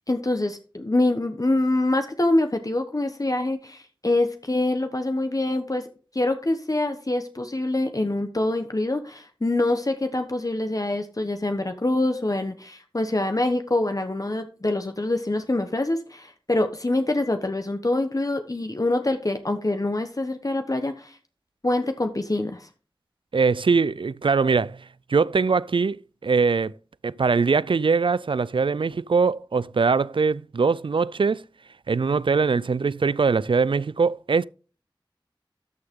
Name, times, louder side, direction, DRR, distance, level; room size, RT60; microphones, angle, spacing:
voice 1, 0.1-5.9 6.1-21.2 21.6-22.7, left 2 dB, 45° left, 1.1 m, -25 dB
voice 2, 23.3-24.8 25.1-26.7 27.0-31.4 31.9-34.5, right 4 dB, 75° right, 0.4 m, -22 dB
13.0 x 6.3 x 3.7 m
wide cardioid pair, 50°, 9 cm